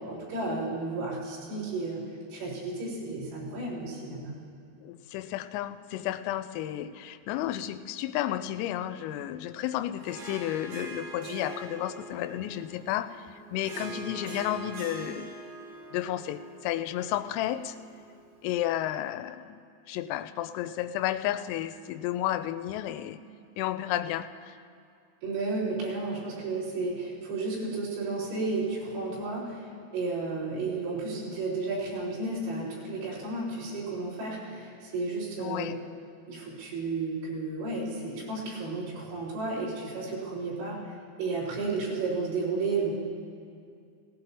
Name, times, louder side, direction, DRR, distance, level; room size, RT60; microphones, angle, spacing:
voice 1, 0.0-2.0 2.3-4.3 25.2-35.7 36.3-40.8 41.2-42.9, right 3 dB, 85° right, -8 dB, 7.1 m, -32 dB
voice 2, 4.8-15.3 15.9-17.8 18.4-23.2 23.6-24.6 35.4-35.8, left 12 dB, 90° left, 12 dB, 3.2 m, -32 dB
Harp, 10.0-18.6, right 2 dB, 55° right, 2.7 m, -43 dB
18.5 x 18.0 x 2.9 m, 2.3 s
omnidirectional pair, 5.8 m